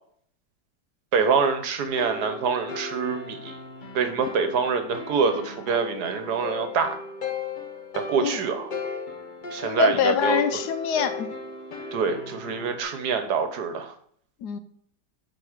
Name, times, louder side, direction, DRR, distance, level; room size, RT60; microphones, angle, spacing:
voice 1, 1.1-3.6 3.9-7.0 8.1-8.7 9.5-10.4 11.9-13.9, right 5 dB, 70° right, 8 dB, 1.5 m, -25 dB
sound 1, 1.8-12.8, left 4 dB, 35° left, 0.9 m, -36 dB
voice 2, 9.6-11.3 14.4-14.6, left 7 dB, 75° left, 10 dB, 1.2 m, -24 dB
8.3 x 4.8 x 4.9 m, 0.63 s
omnidirectional pair, 1.8 m